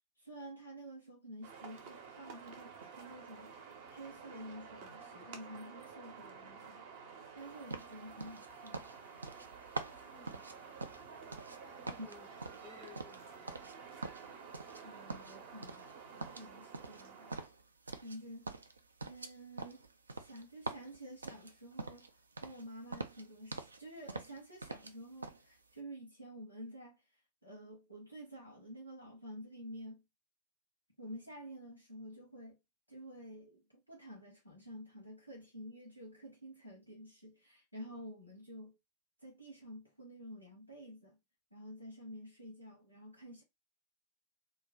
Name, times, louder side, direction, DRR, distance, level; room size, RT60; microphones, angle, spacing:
voice 1, 0.2-3.5 3.9-6.8 7.3-8.8 14.8-15.9 16.1-17.4 18.0-18.5 19.1-19.8 20.1-30.0 31.0-32.6 32.9-38.8 39.2-41.2 41.5-43.4, equal, 85° left, 0.8 m, -50 dB
sound 1, 1.4-17.5, right 6 dB, 55° right, 0.7 m, -51 dB
sound 2, 7.7-11.6 11.8-13.8 14.0-14.8 15.1-15.9 16.2-18.2 18.5-22.1 22.4-22.6 22.9-23.8 24.1-24.9 25.2-25.4, right 3 dB, 75° right, 0.3 m, -45 dB
voice 2, 9.9-10.7 11.8-14.1, left 7 dB, 25° left, 0.4 m, -60 dB
2.4 x 2.2 x 3.4 m
figure-of-eight pair, 90°, 0 cm